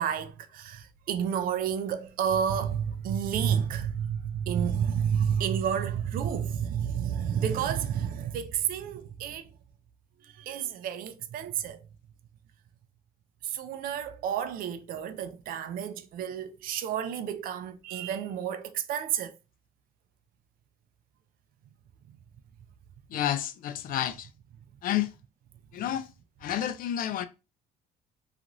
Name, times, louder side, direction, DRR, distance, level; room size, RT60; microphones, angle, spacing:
voice 1, 0.0-9.5 10.2-11.8 13.4-19.3, right 8 dB, 60° right, 0.4 m, -30 dB
voice 2, 23.1-24.3 24.8-25.1 25.7-26.1 26.4-27.3, left 11 dB, 55° left, 0.4 m, -30 dB
2.5 x 2.4 x 2.9 m
cardioid pair, 110°, 17 cm